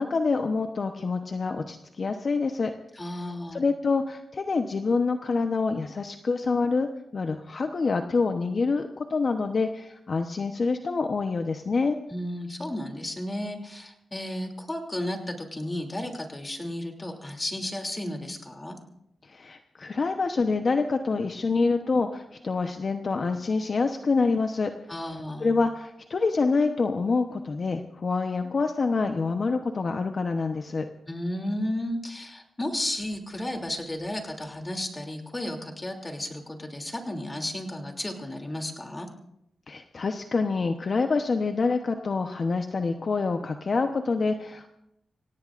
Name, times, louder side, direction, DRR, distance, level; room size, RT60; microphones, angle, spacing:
voice 1, 0.0-2.7 3.5-12.0 19.2-24.7 25.4-30.9 39.7-44.7, left 4 dB, 50° left, 5 dB, 1.0 m, -26 dB
voice 2, 3.0-3.6 12.1-18.7 24.9-25.5 31.1-39.1, left 1 dB, 20° left, 3 dB, 3.0 m, -33 dB
27.0 x 17.0 x 2.6 m, 0.78 s
cardioid pair, 80°, 0 cm